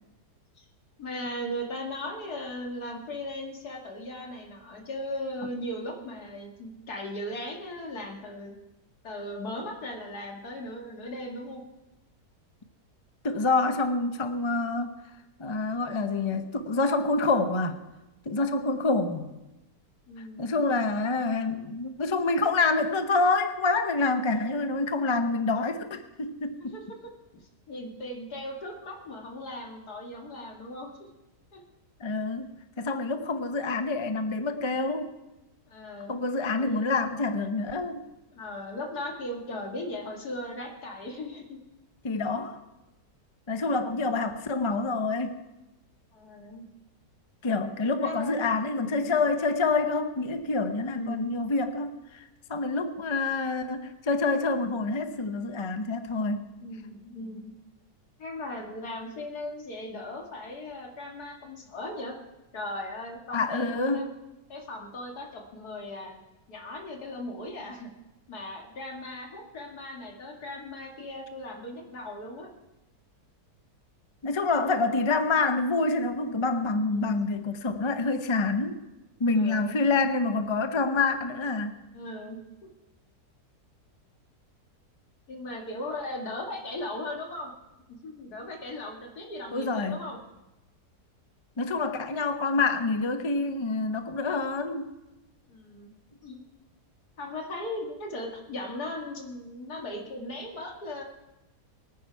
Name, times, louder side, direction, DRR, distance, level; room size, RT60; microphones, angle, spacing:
voice 1, 1.0-8.6 9.0-11.6 18.4-18.8 20.1-20.6 24.3-24.6 26.6-31.0 31.5-31.6 35.7-36.2 36.5-37.0 38.3-41.6 43.7-44.1 46.1-46.7 48.0-49.1 50.9-51.4 56.6-57.5 58.2-62.2 62.5-64.0 64.5-66.2 66.5-67.9 68.3-72.5 76.9-77.2 79.3-79.8 81.9-82.7 85.3-87.5 87.9-90.2 95.5-95.9 96.2-96.4 97.2-101.0, left 1 dB, 65° left, 1 dB, 2.6 m, -38 dB
voice 2, 13.2-14.9 15.4-17.8 18.3-19.3 20.4-26.7 32.0-32.5 32.8-35.1 36.1-38.0 42.0-42.6 43.5-45.4 47.4-52.2 52.5-56.5 63.3-64.1 74.2-78.8 79.2-81.8 89.5-90.0 91.6-94.9, left 3 dB, 30° left, 7 dB, 0.5 m, -27 dB
23.0 x 9.6 x 4.6 m, 0.98 s
omnidirectional pair, 1.8 m